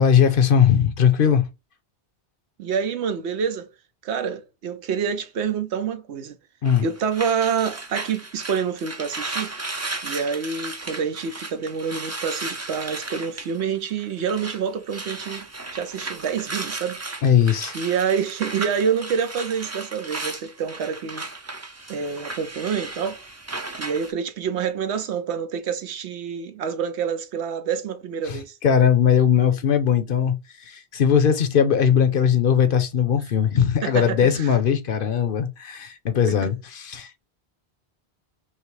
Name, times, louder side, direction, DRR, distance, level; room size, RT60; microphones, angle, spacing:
voice 1, 0.0-1.5 6.6-6.8 17.2-17.7 28.3-37.2, left 8 dB, 60° left, 0.8 m, -19 dB
voice 2, 2.6-3.7 4.0-6.4 6.8-9.5 10.0-15.5 15.7-17.0 17.7-21.3 21.9-23.2 23.8-28.6 33.8-34.5 36.3-36.5, right 6 dB, 85° right, 1.0 m, -27 dB
sound 1, 6.7-14.6 14.9-24.1, right 2 dB, 20° right, 0.4 m, -35 dB
5.6 x 2.0 x 3.2 m
omnidirectional pair, 1.1 m